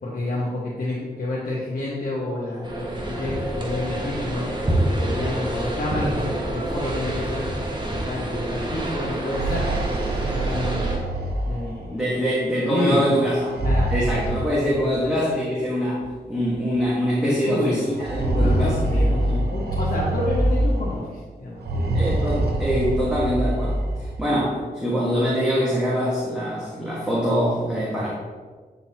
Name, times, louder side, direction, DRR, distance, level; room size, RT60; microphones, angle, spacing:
voice 1, 0.0-4.5 5.0-7.5 7.8-11.2 11.5-12.1 12.6-13.0 13.6-13.9 14.6-15.2 17.2-17.9 18.2-22.1, left 1 dB, 70° left, -7 dB, 1.3 m, -29 dB
sound 1, 2.6-11.0, right 1 dB, 30° right, 1.1 m, -27 dB
sound 2, 9.2-12.0 13.4-15.1 16.1-16.2 16.5-16.6 17.9-21.0 21.6-24.2, right 1 dB, 90° right, 0.7 m, -24 dB
voice 2, 11.9-13.5 13.9-19.4 21.9-28.1, equal, 5° right, -7 dB, 1.4 m, -24 dB
8.9 x 3.9 x 2.9 m, 1.5 s
cardioid pair, 70°, 16 cm